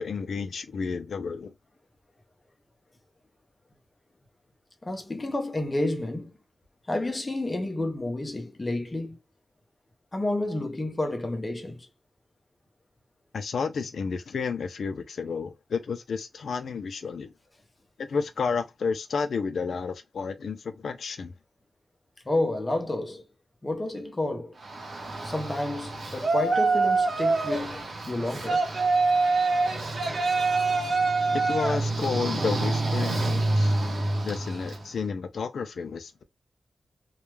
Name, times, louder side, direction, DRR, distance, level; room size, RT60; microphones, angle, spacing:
voice 1, 0.0-1.5 13.3-17.3 18.0-21.3 31.3-33.7 34.2-36.2, left 5 dB, 75° left, 0.3 m, -31 dB
voice 2, 4.8-6.3 6.9-9.2 10.1-11.9 22.2-23.3 23.6-24.6 25.2-28.7, left 1 dB, 20° left, 0.5 m, -30 dB
Yell, 24.6-34.8, right 3 dB, 60° right, 0.8 m, -26 dB
2.2 x 2.1 x 3.0 m
wide cardioid pair, 165°, 0 cm